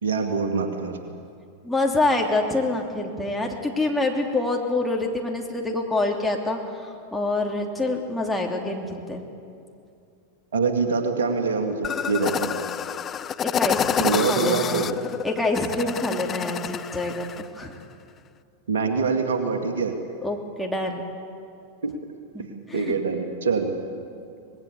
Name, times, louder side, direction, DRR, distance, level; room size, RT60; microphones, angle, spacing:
voice 1, 0.0-1.0 10.5-12.5 14.0-14.9 18.7-19.9 21.8-21.9 22.7-23.7, right 4 dB, 65° right, 5 dB, 2.4 m, -24 dB
voice 2, 1.6-9.2 13.4-14.9 15.2-17.3 17.5-17.8 20.2-21.0 22.3-23.0 24.1-24.2, left 2 dB, 5° left, 0 dB, 3.0 m, -26 dB
sound 1, 11.8-17.4, left 8 dB, 25° left, 0.6 m, -28 dB
25.5 x 20.0 x 8.3 m, 2.5 s
figure-of-eight pair, 90°, 0 cm